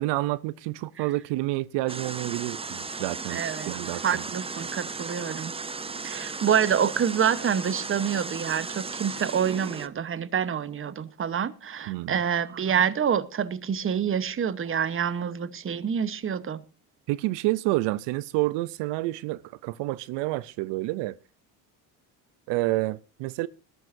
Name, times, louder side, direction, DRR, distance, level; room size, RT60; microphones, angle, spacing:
voice 1, 0.0-4.2 11.9-12.2 17.1-21.2 22.5-23.5, right 19 dB, 80° right, 0.6 m, -29 dB
sound 1, 1.9-9.9, right 4 dB, 15° right, 0.6 m, -36 dB
voice 2, 3.3-5.5 6.0-16.6, right 8 dB, 30° right, 1.0 m, -27 dB
21.0 x 12.5 x 2.6 m
cardioid pair, 95°, 42 cm